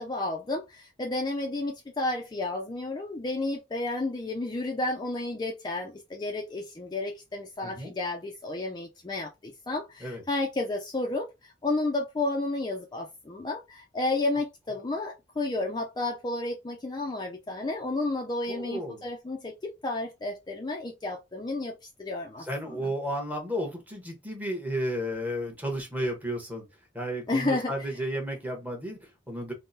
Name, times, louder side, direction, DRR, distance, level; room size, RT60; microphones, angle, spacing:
voice 1, 0.0-22.9 27.3-27.7, left 2 dB, 25° left, 0.4 m, -32 dB
voice 2, 7.6-7.9 10.0-10.2 18.5-19.0 22.4-26.7 26.9-29.5, equal, 10° right, 0.9 m, -33 dB
3.6 x 2.1 x 2.6 m
head